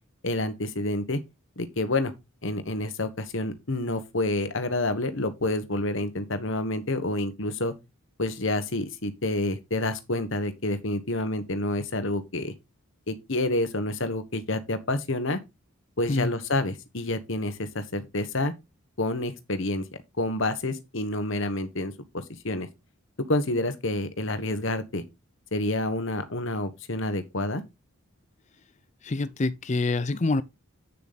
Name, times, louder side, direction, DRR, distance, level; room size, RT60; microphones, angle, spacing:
voice 1, 0.2-1.2 1.6-2.1 2.4-7.7 8.2-12.5 13.1-15.4 16.0-18.5 19.0-19.8 20.2-22.7 23.3-25.0 25.5-27.6, left 2 dB, 60° left, 1.4 m, -28 dB
voice 2, 29.0-30.4, left 2 dB, 30° left, 0.5 m, -26 dB
8.5 x 6.9 x 4.1 m
head